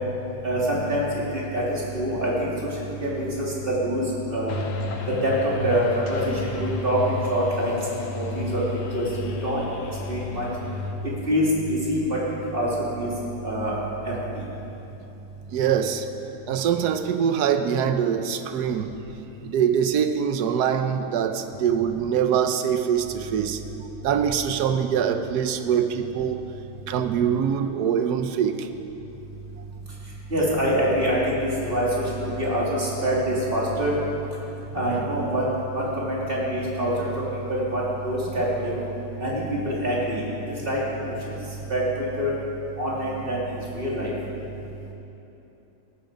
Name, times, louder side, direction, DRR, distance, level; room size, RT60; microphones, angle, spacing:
voice 1, 0.4-4.5 5.1-8.6 8.9-9.6 10.1-10.5 11.0-12.7 13.0-13.1 13.4-13.7 14.0-14.4 30.3-33.9 34.7-37.1 37.5-38.7 39.2-41.4 41.7-42.3 42.8-44.1, equal, 25° right, -6 dB, 3.5 m, -25 dB
sound 1, 4.5-10.9, left 4 dB, 80° left, 2.2 m, -33 dB
voice 2, 15.5-16.1 16.5-18.9 19.4-23.6 24.0-26.4 26.9-28.7 34.9-35.0, right 8 dB, 65° right, 8 dB, 1.0 m, -23 dB
18.0 x 13.0 x 5.2 m, 3.0 s
omnidirectional pair, 2.4 m